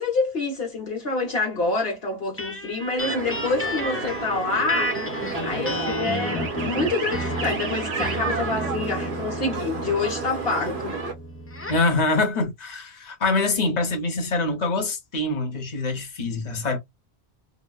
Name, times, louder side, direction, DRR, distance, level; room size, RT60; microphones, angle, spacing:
voice 1, 0.0-4.9 5.4-11.0, left 3 dB, 70° left, 1.2 m, -27 dB
sound 1, 2.4-11.9, equal, 15° left, 0.5 m, -32 dB
sound 2, 3.0-11.1, right 4 dB, 80° right, 1.3 m, -31 dB
voice 2, 11.7-16.8, left 3 dB, 45° left, 1.0 m, -24 dB
3.9 x 2.2 x 2.2 m
omnidirectional pair, 1.1 m